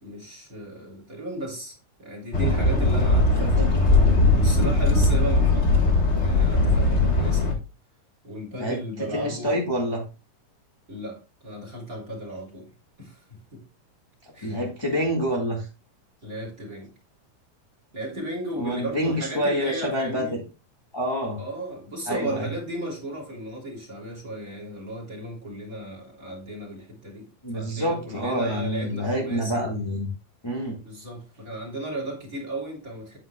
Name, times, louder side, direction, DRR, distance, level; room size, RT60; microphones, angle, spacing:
voice 1, 0.0-7.5 8.2-9.6 10.9-12.7 13.0-13.6 14.3-14.6 16.2-16.9 17.9-20.4 21.4-29.6 30.8-33.2, right 1 dB, 25° right, 3.4 m, -35 dB
sound 1, 2.3-7.5, left 2 dB, 70° left, 0.6 m, -19 dB
voice 2, 9.1-10.0 14.4-15.6 18.6-20.4 20.9-21.4 22.1-22.5 27.4-30.1 30.4-30.7, equal, 15° left, 0.9 m, -27 dB
9.5 x 9.0 x 2.3 m
omnidirectional pair, 3.9 m